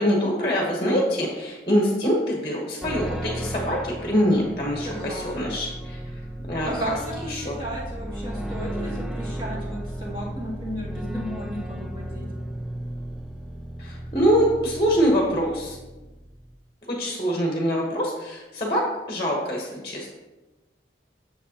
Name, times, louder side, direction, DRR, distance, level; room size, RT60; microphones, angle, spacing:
voice 1, 0.0-6.0 6.5-6.9 7.3-7.6 13.8-15.8 16.9-18.8 19.1-20.1, equal, 30° left, -2 dB, 1.1 m, -24 dB
sound 1, 2.8-16.5, right 1 dB, 5° right, 0.4 m, -34 dB
voice 2, 4.8-5.5 6.7-12.3, equal, 25° right, -6 dB, 2.3 m, -34 dB
8.1 x 6.8 x 2.9 m, 1.1 s
head